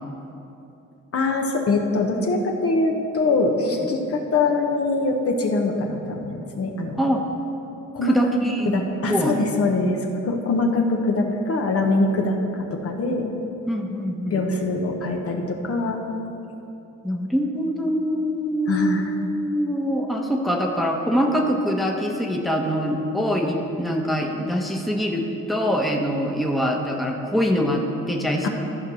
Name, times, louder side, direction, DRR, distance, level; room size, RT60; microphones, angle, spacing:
voice 1, 1.1-7.0 7.9-8.1 8.7-10.0 10.2-12.4 12.7-13.3 14.3-16.0 18.7-19.1 28.4-28.5, left 3 dB, 50° left, 2 dB, 1.2 m, -23 dB
voice 2, 8.0-9.4 13.7-14.4 17.0-28.5, equal, ahead, 1 dB, 1.1 m, -24 dB
14.0 x 4.7 x 6.3 m, 2.9 s
cardioid pair, 90°, 30 cm